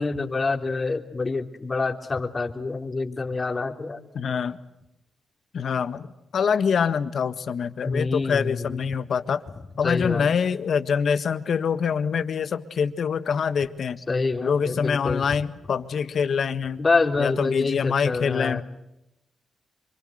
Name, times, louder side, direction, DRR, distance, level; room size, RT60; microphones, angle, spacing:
voice 1, 0.0-4.0 7.8-8.8 9.8-10.3 14.1-15.3 16.8-18.6, left 3 dB, 35° left, 4 dB, 3.5 m, -26 dB
voice 2, 4.1-4.6 5.5-9.4 9.8-14.0 14.4-16.8 17.2-18.6, left 6 dB, 70° left, 12 dB, 1.6 m, -25 dB
26.5 x 24.5 x 8.0 m, 0.88 s
cardioid pair, 70°, 0 cm